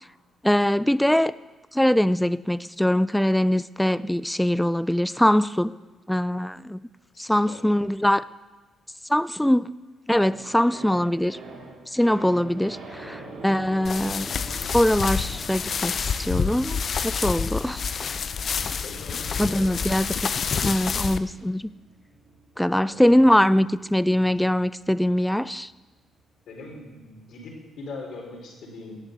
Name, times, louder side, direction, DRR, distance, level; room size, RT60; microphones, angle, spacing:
voice 1, 0.4-1.3 1.7-5.7 6.1-6.8 7.2-8.2 9.1-9.7 10.1-11.4 11.9-14.3 14.7-17.8 19.4-20.1 20.6-21.7 22.6-25.7, left 1 dB, 5° left, 17 dB, 0.4 m, -22 dB
voice 2, 7.1-7.6 18.8-19.7 22.8-23.4 26.5-29.0, left 3 dB, 70° left, 0 dB, 4.2 m, -41 dB
sound 1, 10.3-26.6 26.9-27.0, right 2 dB, 65° right, 4.1 m, -46 dB
sound 2, 13.8-21.2, left 6 dB, 50° left, 0.6 m, -28 dB
18.5 x 7.3 x 6.8 m, 1.2 s
cardioid pair, 90°, 0 cm